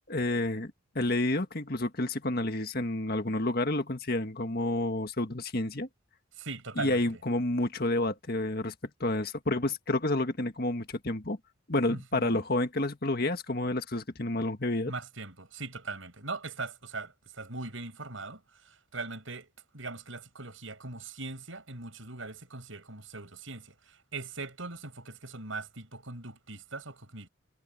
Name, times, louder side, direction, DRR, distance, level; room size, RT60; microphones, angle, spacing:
voice 1, 0.1-5.9 6.8-8.7 9.0-11.4 11.7-14.9, left 2 dB, 50° left, 1.8 m, -30 dB
voice 2, 6.4-7.0 11.9-12.4 14.9-19.5 19.7-27.3, right 3 dB, 80° right, 5.7 m, -40 dB
head